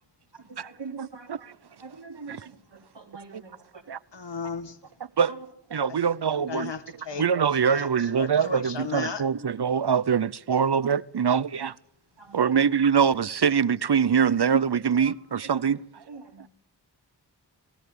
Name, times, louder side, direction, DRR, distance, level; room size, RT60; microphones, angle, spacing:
voice 1, 0.3-1.5 1.8-3.8 5.3-5.4 7.1-7.3 9.3-9.4 9.7-9.8 11.3-11.5 12.2-12.6 15.0-15.1 16.1-16.4, right 4 dB, 85° right, 3.3 m, -43 dB
voice 2, 1.0-1.5 2.3-2.5 3.3-3.4 3.9-4.0 5.2-5.3 5.7-6.7 7.2-11.7 12.3-15.8 16.4-16.5, right 7 dB, 65° right, 0.8 m, -24 dB
voice 3, 4.1-4.8 5.9-6.0 6.3-7.3 7.7-9.2, left 5 dB, 85° left, 1.5 m, -35 dB
21.5 x 15.5 x 9.5 m
wide cardioid pair, 40°, 42 cm